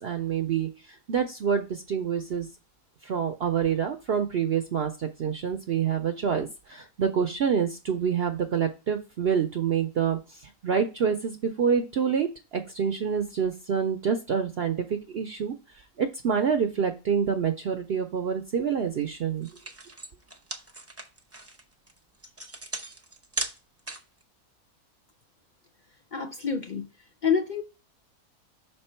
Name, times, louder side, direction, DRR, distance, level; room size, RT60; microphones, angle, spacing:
voice 1, 0.0-2.5 3.0-15.5 16.0-19.5, right 7 dB, 55° right, 0.7 m, -27 dB
sound 1, 19.0-19.1 19.4-24.2, right 2 dB, 15° right, 0.6 m, -37 dB
voice 2, 26.1-27.6, left 6 dB, 85° left, 0.4 m, -28 dB
5.9 x 4.4 x 4.3 m
omnidirectional pair, 1.5 m